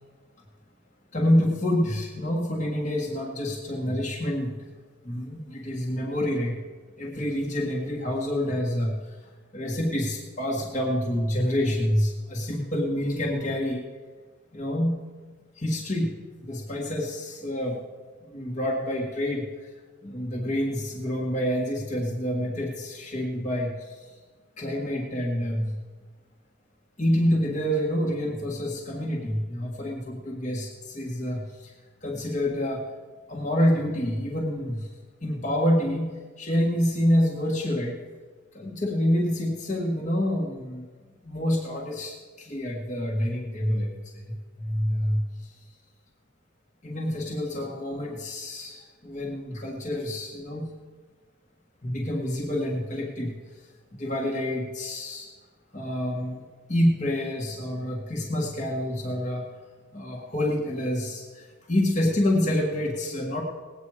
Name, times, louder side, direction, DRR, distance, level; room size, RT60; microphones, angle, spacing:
voice 1, 1.1-4.5 5.0-6.6 7.0-9.2 9.5-13.8 14.5-15.0 15.6-16.2 16.4-17.8 18.3-19.5 20.0-24.1 24.6-25.8 27.0-31.7 32.0-32.9 33.3-34.9 35.2-38.0 38.5-40.9 41.2-44.2 44.6-45.5 46.8-50.7 51.8-53.3 53.9-55.3 55.7-56.3 56.7-59.4 59.9-63.4, left 1 dB, 35° left, -3 dB, 1.8 m, -27 dB
19.5 x 8.9 x 4.9 m, 1.4 s
head